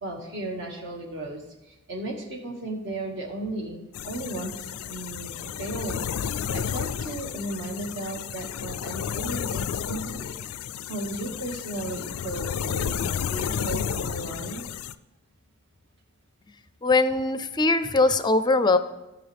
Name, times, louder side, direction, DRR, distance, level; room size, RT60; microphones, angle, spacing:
voice 1, 0.0-6.1 6.5-10.3 10.6-14.6, right 1 dB, 55° right, 0 dB, 1.9 m, -35 dB
sound 1, 3.9-14.9, left 8 dB, 80° left, 0.4 m, -32 dB
voice 2, 16.8-18.8, left 3 dB, 20° left, 12 dB, 0.5 m, -21 dB
17.0 x 5.8 x 3.4 m, 1.0 s
head